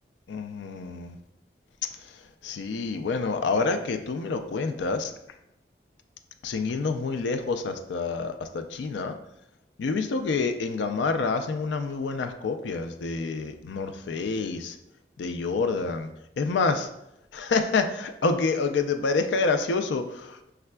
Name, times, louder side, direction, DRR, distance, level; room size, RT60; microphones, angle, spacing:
voice 1, 0.3-1.2 2.4-5.1 6.4-9.1 9.8-14.8 15.2-16.1 16.4-16.9 17.3-20.4, left 4 dB, 90° left, 8 dB, 0.4 m, -27 dB
5.6 x 3.4 x 2.2 m, 0.84 s
head